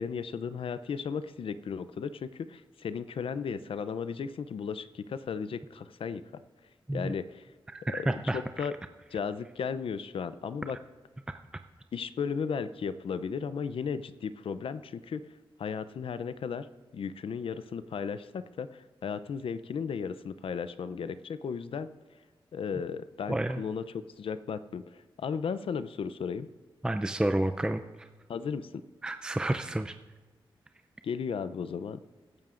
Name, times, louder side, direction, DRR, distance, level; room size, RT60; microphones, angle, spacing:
voice 1, 0.0-6.4 6.9-7.4 7.9-8.7 9.1-10.8 11.9-15.2 15.6-16.7 16.9-21.9 22.5-23.8 24.2-26.5 28.3-28.8 31.0-32.0, left 6 dB, 75° left, 13 dB, 0.5 m, -35 dB
voice 2, 7.7-8.7 23.3-23.6 26.8-28.1 29.0-29.9, right 1 dB, 10° right, 8 dB, 0.5 m, -30 dB
21.5 x 10.5 x 2.5 m, 1.3 s
cardioid pair, 80°, 9 cm